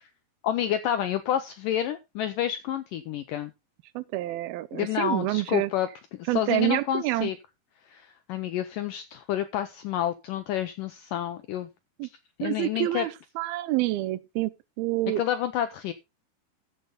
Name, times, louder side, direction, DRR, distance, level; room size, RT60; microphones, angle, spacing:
voice 1, 0.4-3.5 4.7-7.4 7.9-11.7 12.4-13.1 15.2-15.9, left 10 dB, 90° left, 1.9 m, -29 dB
voice 2, 4.0-5.7 6.3-7.3 12.0-12.1 12.4-15.2, right 16 dB, 80° right, 2.4 m, -28 dB
14.5 x 6.9 x 3.9 m
omnidirectional pair, 4.8 m